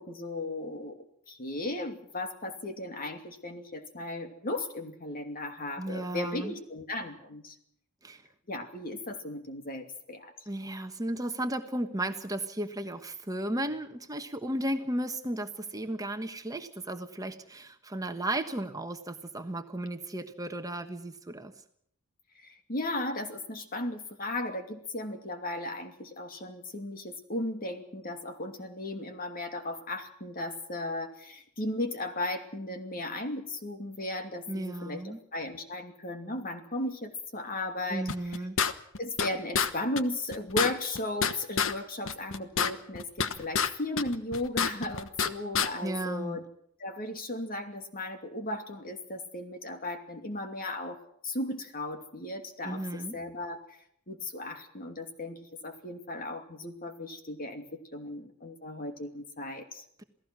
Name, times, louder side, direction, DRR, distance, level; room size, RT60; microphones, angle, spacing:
voice 1, 0.0-7.6 8.5-10.3 22.3-38.4 39.0-46.4 46.8-53.8 54.1-59.8, left 1 dB, 40° left, 6 dB, 2.7 m, -36 dB
voice 2, 5.8-6.5 8.0-8.2 10.5-21.5 34.5-35.2 37.9-38.6 45.8-46.4 52.6-53.1 60.0-60.1, right 1 dB, 15° right, 6 dB, 1.3 m, -34 dB
sound 1, 38.1-39.3 39.5-39.7 40.0-40.1 40.3-41.7 42.1-43.7 44.0-45.3 45.5-45.7, left 6 dB, 65° left, 1.2 m, -28 dB
28.0 x 17.5 x 6.2 m, 0.70 s
head